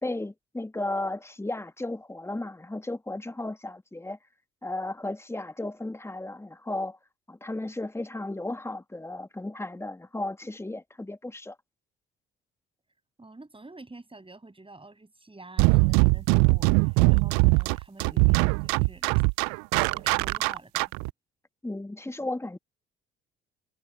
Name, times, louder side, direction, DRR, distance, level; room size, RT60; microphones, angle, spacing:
voice 1, 0.0-4.2 4.6-7.0 7.3-11.5 21.6-22.6, left 2 dB, 10° left, 1.5 m, -34 dB
voice 2, 13.2-19.1 19.9-20.9, right 2 dB, 20° right, 7.4 m, -48 dB
sound 1, 15.6-21.1, right 32 dB, 70° right, 0.5 m, -22 dB
hypercardioid pair, 50°, 29 cm